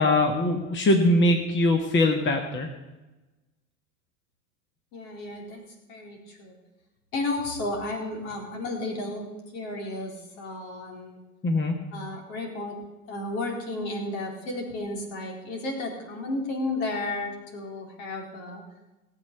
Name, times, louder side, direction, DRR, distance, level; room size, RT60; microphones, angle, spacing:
voice 1, 0.0-2.7 11.4-11.8, left 1 dB, 25° left, 4 dB, 1.6 m, -22 dB
voice 2, 4.9-5.6 5.9-6.6 7.1-9.3 9.5-11.2 11.9-12.8 13.1-18.6, left 2 dB, 60° left, 1 dB, 4.1 m, -33 dB
17.5 x 8.0 x 6.9 m, 1.1 s
hypercardioid pair, 85°, 45 cm